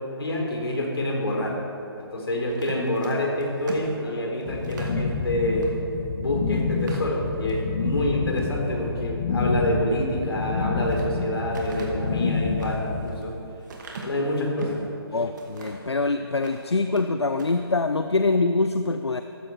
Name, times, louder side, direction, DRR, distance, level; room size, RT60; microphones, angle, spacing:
voice 1, 0.2-1.6 2.0-5.7 6.1-13.3 14.0-14.8, left 1 dB, 70° left, 0 dB, 3.9 m, -27 dB
sound 1, 2.5-5.0 5.6-5.8 6.1-6.2 6.7-7.6 8.1-8.6 10.4-11.1 11.5-14.9 15.4-15.9 16.3-17.1 17.3-17.6, right 3 dB, 45° right, 2.2 m, -41 dB
sound 2, 4.4-13.0, left 4 dB, 40° left, 1.7 m, -28 dB
voice 2, 15.1-19.2, left 3 dB, 90° left, 9 dB, 0.6 m, -24 dB
15.0 x 14.0 x 4.6 m, 3.0 s
figure-of-eight pair, 145°, 14 cm